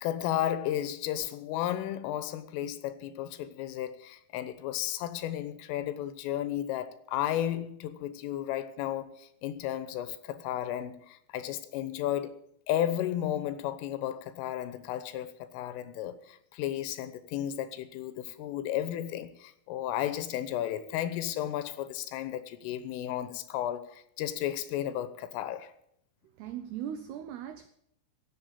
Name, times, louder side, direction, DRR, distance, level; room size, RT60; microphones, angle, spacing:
voice 1, 0.0-12.4 12.7-25.7, left 12 dB, 90° left, 3.6 m, -33 dB
voice 2, 26.3-27.7, right 9 dB, 85° right, 2.3 m, -39 dB
16.0 x 7.1 x 8.6 m
omnidirectional pair, 5.6 m